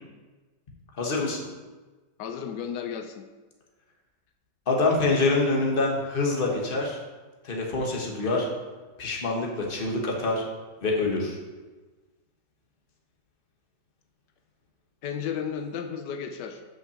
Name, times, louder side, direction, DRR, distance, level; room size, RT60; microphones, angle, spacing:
voice 1, 1.0-1.5 4.7-7.0 7.4-8.5 9.0-10.4 10.8-11.4, left 3 dB, 35° left, -1 dB, 1.4 m, -25 dB
voice 2, 2.2-3.2 15.0-16.6, left 7 dB, 85° left, 6 dB, 1.3 m, -33 dB
5.8 x 5.7 x 7.0 m, 1.3 s
omnidirectional pair, 1.8 m